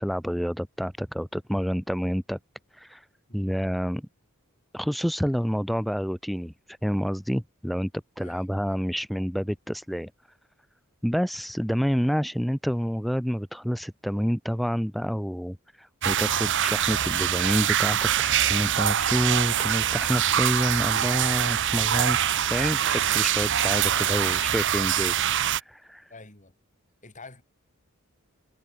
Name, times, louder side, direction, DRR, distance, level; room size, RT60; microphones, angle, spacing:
voice 1, 0.0-2.4 2.7-3.1 3.3-4.1 4.7-7.9 8.2-10.1 11.0-22.2 22.5-26.1, equal, ahead, 1.5 m, -28 dB
voice 2, 3.3-3.6 8.2-8.8 23.8-24.4 24.7-24.9 26.1-26.5 27.0-27.4, left 3 dB, 35° left, 6.2 m, -47 dB
sound 1, 16.0-25.6, right 10 dB, 55° right, 1.1 m, -24 dB
head